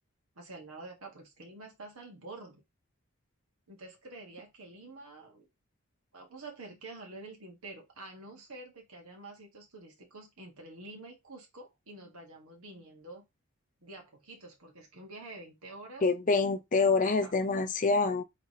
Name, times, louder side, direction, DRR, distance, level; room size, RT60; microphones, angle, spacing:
voice 1, 0.4-2.6 3.7-5.5 6.1-13.2 13.8-16.1 16.8-17.3, right 2 dB, 85° right, 1.7 m, -48 dB
voice 2, 16.0-18.2, left 4 dB, 35° left, 0.5 m, -26 dB
3.8 x 3.4 x 3.1 m
head